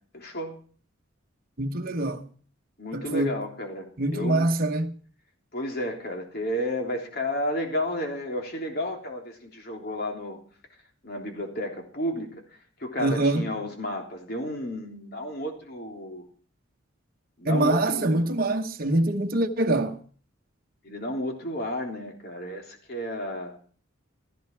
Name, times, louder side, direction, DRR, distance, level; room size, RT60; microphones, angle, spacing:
voice 1, 0.1-0.6 2.8-4.5 5.5-10.4 11.0-12.4 12.8-16.2 17.4-18.0 20.8-23.5, left 1 dB, 50° left, 3.4 m, -32 dB
voice 2, 1.6-2.3 2.9-3.4 4.0-4.9 13.0-13.5 17.4-20.0, right 2 dB, 45° right, 1.1 m, -24 dB
15.5 x 15.0 x 4.6 m
head